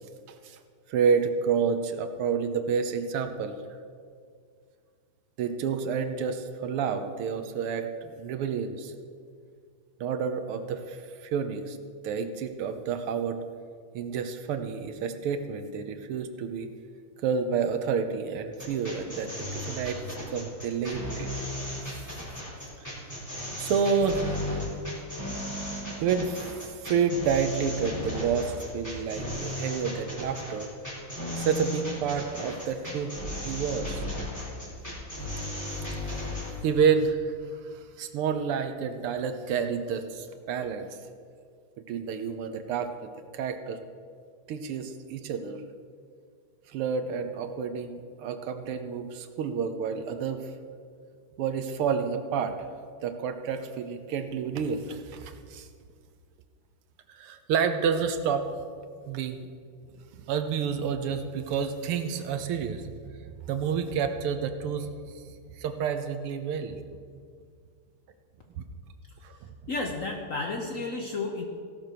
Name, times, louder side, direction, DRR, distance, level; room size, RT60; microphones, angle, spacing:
voice 1, 0.9-3.6 5.4-8.9 10.0-11.8 12.0-13.4 13.9-16.7 17.2-20.0 20.3-21.3 23.6-24.6 26.0-26.5 26.8-30.7 31.4-33.1 33.4-34.0 36.6-37.3 37.7-40.9 41.9-43.8 44.5-45.6 46.7-50.5 51.4-52.6 53.0-55.7 57.1-58.4 59.1-59.5 60.1-62.8 63.5-64.9 65.6-66.8 68.6-68.7 69.2-69.5, right 6 dB, 80° right, 8 dB, 1.8 m, -29 dB
sound 1, 18.5-36.5, left 1 dB, 5° left, 3.9 m, -35 dB
voice 2, 69.7-71.5, left 3 dB, 55° left, 2 dB, 0.9 m, -32 dB
16.0 x 6.1 x 6.7 m, 2.1 s
omnidirectional pair, 2.4 m